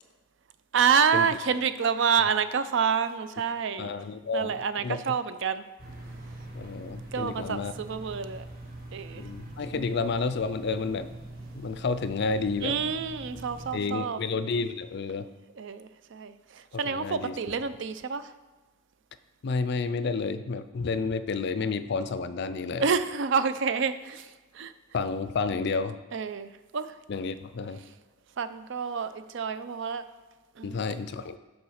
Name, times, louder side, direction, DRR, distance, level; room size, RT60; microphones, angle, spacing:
voice 1, 0.7-3.9 4.3-5.6 7.1-8.4 8.9-9.2 9.7-9.8 12.6-14.2 15.6-18.3 22.8-24.3 24.5-24.7 26.1-26.9 28.4-30.0 30.6-30.8, right 6 dB, 60° right, 13 dB, 0.5 m, -28 dB
voice 2, 3.8-4.5 4.8-5.1 6.5-7.7 9.1-11.1 11.5-12.8 13.7-15.3 16.9-17.4 19.4-22.9 24.9-26.0 27.1-27.8 30.6-31.4, left 4 dB, 55° left, 12 dB, 0.4 m, -30 dB
sound 1, 5.8-13.8, right 1 dB, 45° right, 1.7 m, -43 dB
7.0 x 4.8 x 6.3 m, 1.2 s
head